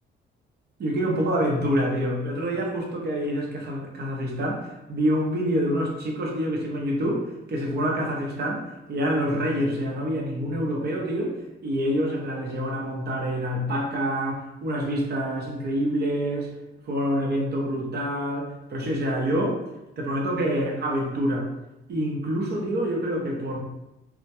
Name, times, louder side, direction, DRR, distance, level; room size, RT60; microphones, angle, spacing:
voice 1, 0.8-7.2 7.5-8.6 8.9-11.3 11.6-16.5 16.9-19.6 20.0-21.5 21.9-23.6, equal, 55° right, -1 dB, 0.6 m, -26 dB
2.2 x 2.1 x 2.8 m, 0.94 s
cardioid pair, 90°, 20 cm